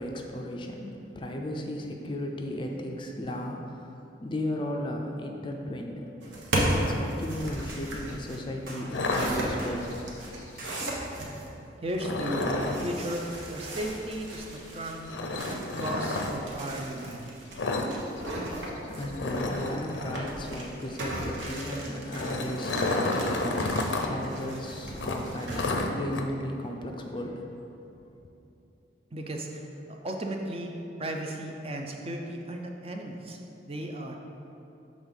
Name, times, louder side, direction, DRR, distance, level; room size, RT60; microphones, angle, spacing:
voice 1, 0.0-6.1 6.7-10.0 18.9-27.5, left 1 dB, 25° left, 2 dB, 0.4 m, -35 dB
sound 1, 6.2-11.5 12.5-25.7, right 1 dB, 75° right, 1.1 m, -36 dB
sound 2, 6.7-6.9 7.7-7.9 8.7-8.9 9.6-9.8 10.6-10.8, right 2 dB, 50° right, 1.2 m, -43 dB
sound 3, 8.9-9.9 11.9-12.9 15.1-16.3 17.6-17.9 18.2-18.4 18.7-18.8 19.1-20.3 21.8-24.1 24.4-24.5 25.0-26.2, left 2 dB, 80° left, 0.6 m, -30 dB
voice 2, 11.8-15.1 15.5-17.5 29.1-33.4 33.7-34.2, right 1 dB, 30° right, 2 dB, 0.5 m, -35 dB
6.4 x 3.6 x 5.3 m, 2.9 s
head